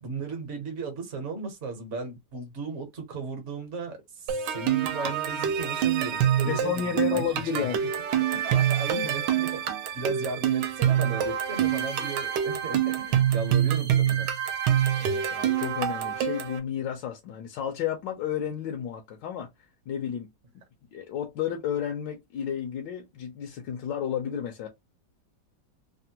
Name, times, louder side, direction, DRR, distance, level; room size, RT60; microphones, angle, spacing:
voice 1, 0.0-7.7 8.1-9.6 9.9-14.3, right 4 dB, 50° right, 1.0 m, -36 dB
sound 1, 4.3-16.6, right 9 dB, 75° right, 1.2 m, -26 dB
voice 2, 6.4-7.9 14.9-19.5 19.9-20.3 20.9-24.7, left 8 dB, 80° left, 1.3 m, -32 dB
3.4 x 2.1 x 2.8 m
omnidirectional pair, 2.0 m